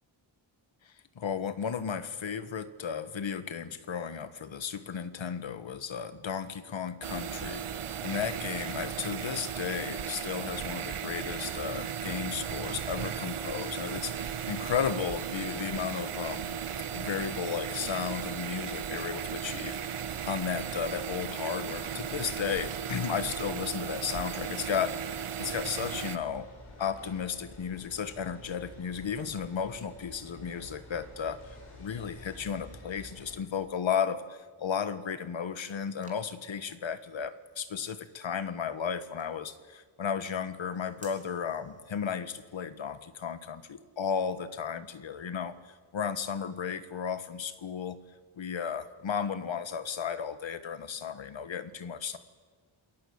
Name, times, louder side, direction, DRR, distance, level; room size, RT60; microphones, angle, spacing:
voice 1, 1.1-7.6 8.0-16.6 16.9-26.5 26.8-31.4 31.8-48.0 48.4-52.2, left 7 dB, 65° left, 12 dB, 1.7 m, -34 dB
sound 1, 7.0-26.2, right 8 dB, 85° right, 1.4 m, -36 dB
sound 2, 25.9-33.4, left 2 dB, 90° left, 7.6 m, -50 dB
sound 3, 36.0-42.1, right 2 dB, 15° right, 3.5 m, -59 dB
27.5 x 22.0 x 8.7 m, 1.5 s
wide cardioid pair, 175°, 49 cm